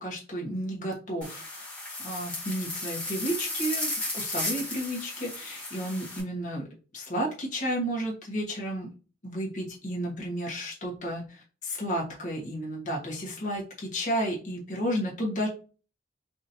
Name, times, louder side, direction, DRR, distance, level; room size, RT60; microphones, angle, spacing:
voice 1, 0.0-1.6 2.0-6.7 6.9-8.9 9.2-15.5, equal, 40° left, -2 dB, 1.3 m, -32 dB
sound 1, 1.2-6.2, left 2 dB, 5° left, 1.5 m, -34 dB
5.1 x 2.7 x 2.7 m, 0.36 s
head